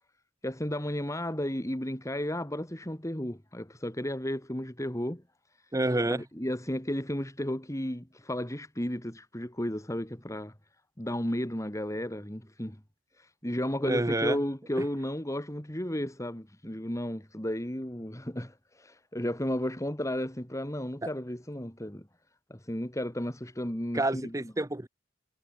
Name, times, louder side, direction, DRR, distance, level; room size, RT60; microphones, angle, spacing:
voice 1, 0.4-5.2 6.0-10.5 11.0-12.8 13.1-22.1 22.5-24.5, left 1 dB, 15° left, 3.1 m, -33 dB
voice 2, 5.7-6.2 13.8-14.4 21.0-21.1 23.9-24.9, right 2 dB, 20° right, 0.9 m, -28 dB
head